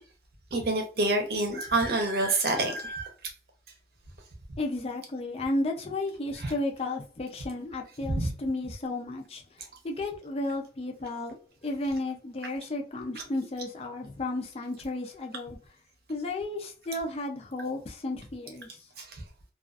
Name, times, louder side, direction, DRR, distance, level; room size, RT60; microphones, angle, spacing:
voice 1, 0.5-3.1 6.4-6.5 8.0-8.3 19.0-19.2, right 2 dB, 60° right, 0.7 m, -27 dB
voice 2, 4.6-9.4 9.8-11.4 11.6-15.6 16.1-18.7, left 2 dB, 35° left, 0.4 m, -33 dB
2.4 x 2.4 x 2.4 m
head